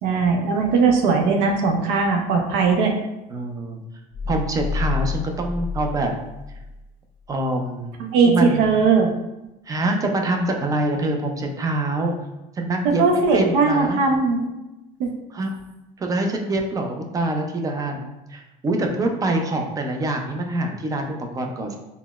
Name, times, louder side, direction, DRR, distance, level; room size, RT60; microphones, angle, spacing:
voice 1, 0.0-2.9 8.0-9.1 12.8-14.5 15.0-15.1, right 4 dB, 75° right, 3 dB, 0.5 m, -19 dB
voice 2, 3.3-3.8 4.2-6.1 6.5-6.6 7.3-7.9 8.2-8.7 9.7-12.2 12.5-14.0 15.3-15.5 16.0-21.8, right 2 dB, 20° right, 3 dB, 0.3 m, -25 dB
sound 1, 4.1-6.8, left 4 dB, 35° left, 0.5 m, -29 dB
3.8 x 2.0 x 2.2 m, 0.97 s
cardioid pair, 135°, 18 cm